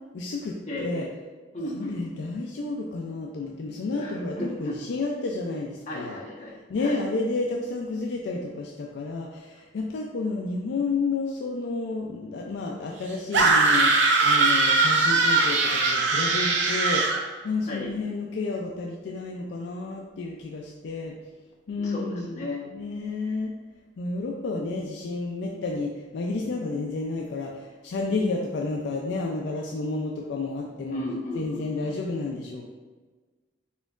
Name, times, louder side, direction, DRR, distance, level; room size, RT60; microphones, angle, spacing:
voice 1, 0.1-1.1 1.6-6.2 6.7-21.2 21.7-23.5 24.0-31.0 31.3-32.7, left 3 dB, 70° left, 0 dB, 0.3 m, -31 dB
voice 2, 0.6-1.1 1.5-2.1 3.9-4.7 5.9-7.0 17.7-17.9 21.8-22.6 30.9-31.9, left 1 dB, 40° left, -6 dB, 1.0 m, -35 dB
sound 1, 13.3-17.2, right 3 dB, 75° right, 0.6 m, -21 dB
4.2 x 3.7 x 2.4 m, 1.3 s
head